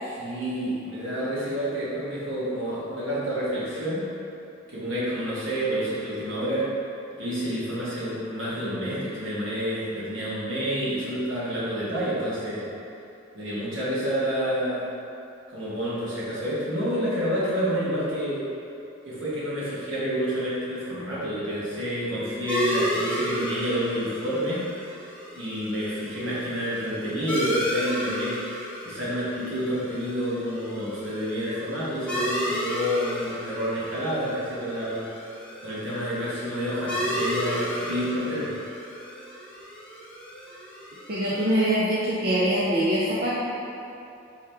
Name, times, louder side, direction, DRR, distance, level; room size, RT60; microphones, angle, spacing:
voice 1, 0.0-4.1 4.7-6.7 7.2-12.6 13.3-14.9 15.5-18.5 19.0-24.6 25.3-35.1 35.6-38.5, equal, 75° right, -9 dB, 1.4 m, -29 dB
sound 1, 22.5-41.6, equal, 5° left, 0.7 m, -33 dB
voice 2, 41.1-43.4, equal, 50° right, -8 dB, 0.5 m, -23 dB
4.7 x 3.0 x 3.4 m, 2.7 s
head